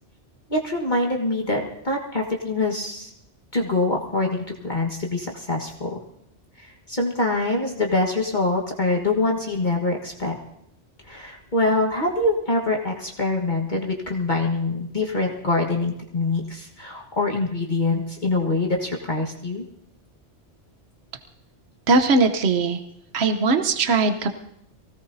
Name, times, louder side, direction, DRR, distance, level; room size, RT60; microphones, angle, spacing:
voice 1, 0.5-3.1 3.5-6.0 6.6-10.4 11.0-19.7, left 2 dB, 40° left, 0 dB, 1.7 m, -24 dB
voice 2, 21.9-22.8 23.1-24.3, right 3 dB, 65° right, 8 dB, 1.2 m, -20 dB
24.0 x 17.0 x 2.7 m, 0.76 s
omnidirectional pair, 1.2 m